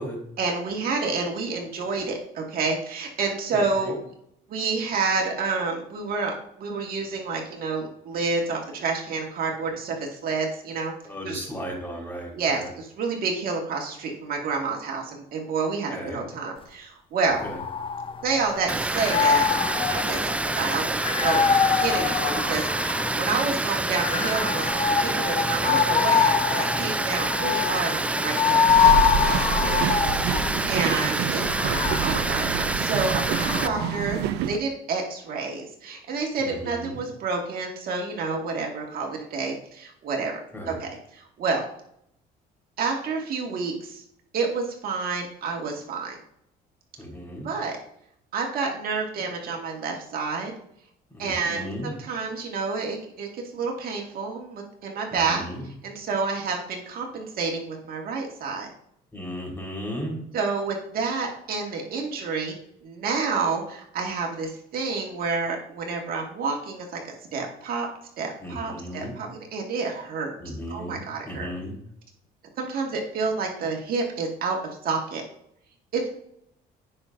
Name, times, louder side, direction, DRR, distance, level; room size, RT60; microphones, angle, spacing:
voice 1, 0.4-4.0 4.5-6.3 6.6-10.9 11.3-11.4 12.3-17.4 18.2-19.5 19.9-28.6 30.2-34.2 34.5-40.4 40.7-41.6 42.8-44.0 44.3-46.2 47.4-47.8 48.3-50.5 51.2-55.4 55.8-58.7 60.3-62.6 62.8-67.9 68.2-70.3 70.7-71.5 72.6-75.2 75.9-76.2, right 4 dB, 60° right, 1 dB, 1.8 m, -29 dB
voice 2, 3.5-3.9 11.0-12.7 15.9-16.2 17.4-17.6 29.6-29.8 33.6-33.7 36.4-37.0 40.5-40.8 47.0-47.5 51.1-51.9 55.2-55.7 59.1-60.2 68.4-69.2 70.4-71.8, equal, 15° left, -1 dB, 3.8 m, -35 dB
sound 1, 17.3-18.5 18.9-23.3 24.0-30.7 31.4-34.0, left 7 dB, 30° left, 0.7 m, -24 dB
Water, 18.7-33.7, right 2 dB, 10° right, 0.3 m, -27 dB
sound 2, 28.7-34.6, right 9 dB, 80° right, 0.6 m, -28 dB
17.0 x 5.8 x 2.5 m, 0.72 s
cardioid pair, 110°, 17 cm